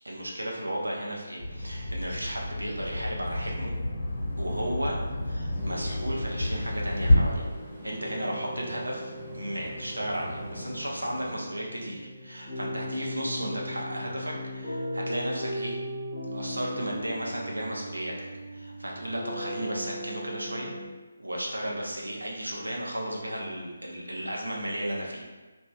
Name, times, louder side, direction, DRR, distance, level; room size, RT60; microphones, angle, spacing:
voice 1, 0.0-3.8 4.4-5.0 5.2-7.4 7.8-15.8 16.3-18.1 18.5-20.7 21.2-25.2, right 1 dB, 80° right, -2 dB, 0.7 m, -34 dB
Bird vocalization bird call bird song, 1.4-7.1, left 2 dB, 55° left, 0.8 m, -30 dB
sound 1, 5.5-11.3, equal, ahead, 0.6 m, -44 dB
sound 2, 5.6-20.9, equal, 15° right, 1.0 m, -38 dB
3.1 x 2.6 x 2.3 m, 1.3 s
figure-of-eight pair, 150°, 0 cm